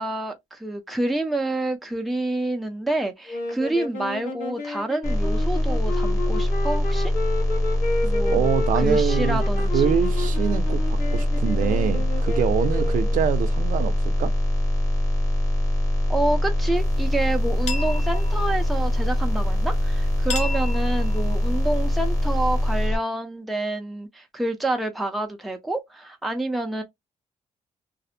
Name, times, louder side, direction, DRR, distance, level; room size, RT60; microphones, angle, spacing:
voice 1, 0.0-7.1 8.0-8.5 8.7-9.9 16.1-26.8, right 2 dB, ahead, 0.3 m, -28 dB
sound 1, 3.3-13.3, left 2 dB, 80° left, 0.9 m, -31 dB
sound 2, 5.0-23.0, left 1 dB, 20° left, 0.8 m, -23 dB
voice 2, 8.3-9.4 9.7-13.9 14.2-14.3, right 9 dB, 75° right, 0.4 m, -25 dB
sound 3, 16.7-22.9, equal, 55° left, 0.9 m, -36 dB
2.4 x 2.0 x 2.6 m
wide cardioid pair, 165°, 14 cm